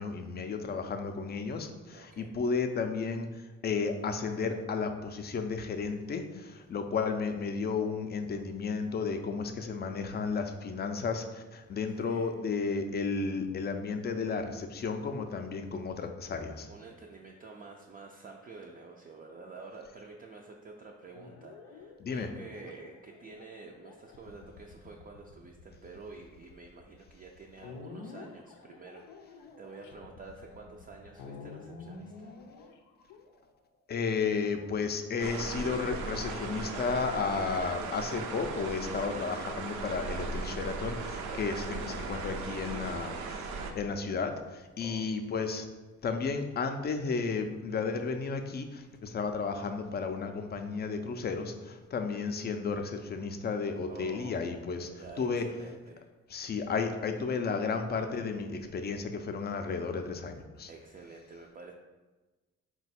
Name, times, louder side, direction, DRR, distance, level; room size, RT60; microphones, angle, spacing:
voice 1, 0.0-16.7 22.0-22.3 33.9-45.7 46.0-55.4 56.3-60.7, left 5 dB, 35° left, 6 dB, 0.4 m, -33 dB
voice 2, 1.9-2.3 12.0-12.3 16.7-32.3 41.3-41.7 44.8-45.1 53.9-54.5 55.0-56.1 60.7-61.7, right 3 dB, 30° right, 0 dB, 0.4 m, -49 dB
sound 1, 21.1-33.8 34.6-35.2 36.0-37.5 39.1-40.5, left 4 dB, 85° left, 0.5 m, -50 dB
sound 2, 35.2-43.7, right 4 dB, 80° right, 0.5 m, -37 dB
4.0 x 2.2 x 4.1 m, 1.2 s
cardioid pair, 90°, 30 cm